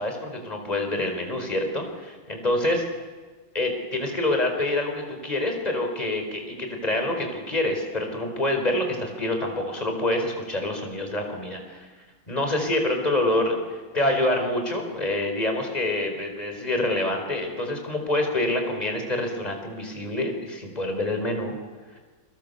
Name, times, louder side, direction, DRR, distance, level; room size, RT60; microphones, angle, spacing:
voice 1, 0.0-2.8 3.5-11.9 12.3-21.5, left 1 dB, 20° left, 3 dB, 4.8 m, -26 dB
29.0 x 24.0 x 6.9 m, 1.4 s
omnidirectional pair, 2.0 m